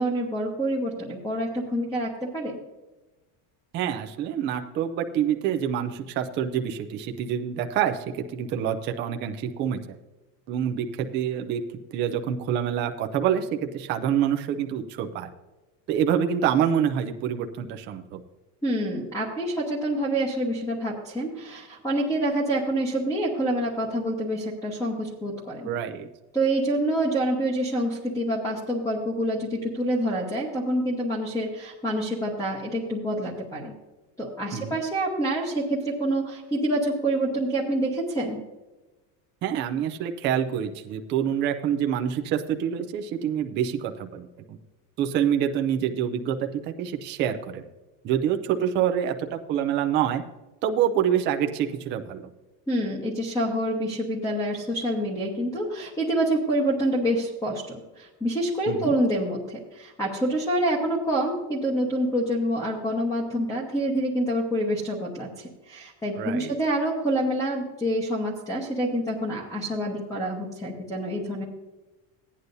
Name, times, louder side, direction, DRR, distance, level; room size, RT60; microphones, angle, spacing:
voice 1, 0.0-2.6 18.6-25.7 26.3-33.7 34.2-38.4 52.7-71.4, right 1 dB, 5° left, -2 dB, 1.0 m, -27 dB
voice 2, 3.7-8.0 8.3-10.0 10.5-11.6 11.9-15.3 15.9-18.2 25.6-26.1 34.5-34.8 39.4-44.6 45.0-47.6 48.0-50.2 50.6-52.3 58.7-58.9 66.2-66.5, right 9 dB, 25° right, 5 dB, 0.4 m, -26 dB
16.0 x 9.7 x 2.6 m, 1.1 s
cardioid pair, 175°, 47 cm